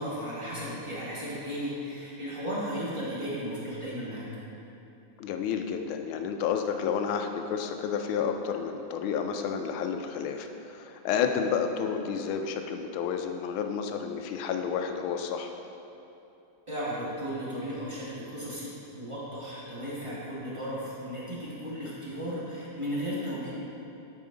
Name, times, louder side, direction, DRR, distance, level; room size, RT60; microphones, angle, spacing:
voice 1, 0.0-4.2 16.7-23.5, equal, 15° right, -8 dB, 1.2 m, -35 dB
voice 2, 5.2-15.5, left 7 dB, 85° left, 6 dB, 1.4 m, -30 dB
8.5 x 5.0 x 3.8 m, 2.8 s
omnidirectional pair, 2.2 m